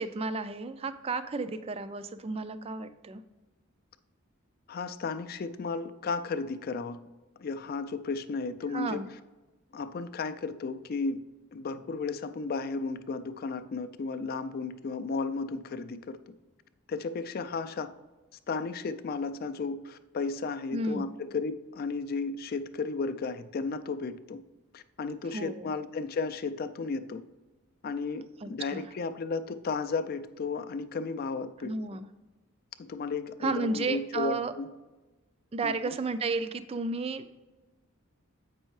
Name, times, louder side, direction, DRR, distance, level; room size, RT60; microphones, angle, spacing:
voice 1, 0.0-3.2 8.7-9.1 20.7-21.1 25.3-25.7 28.4-28.8 31.6-32.1 33.4-34.5 35.5-37.4, right 3 dB, 30° right, 12 dB, 0.3 m, -33 dB
voice 2, 4.7-7.0 7.4-9.0 9.7-11.2 11.5-16.2 16.9-17.9 18.5-24.4 24.7-27.2 27.8-31.7 32.8-34.7 35.6-35.9, left 4 dB, 45° left, 11 dB, 0.4 m, -34 dB
8.0 x 5.4 x 3.1 m, 1.1 s
head